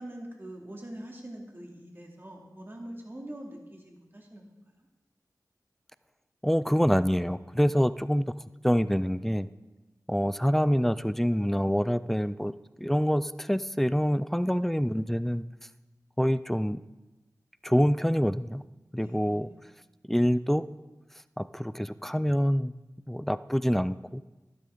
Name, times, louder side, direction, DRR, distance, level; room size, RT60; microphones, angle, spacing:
voice 1, 0.0-4.4 4.8-4.9 19.0-19.6, right 1 dB, 35° right, -1 dB, 2.6 m, -44 dB
voice 2, 6.4-8.3 8.6-9.5 10.1-12.5 12.8-15.4 16.2-16.8 17.6-18.6 18.9-19.5 20.1-20.6 21.4-22.7 23.1-24.2, equal, 5° left, 15 dB, 0.4 m, -26 dB
12.0 x 12.0 x 3.8 m, 1.1 s
wide cardioid pair, 60°, 7 cm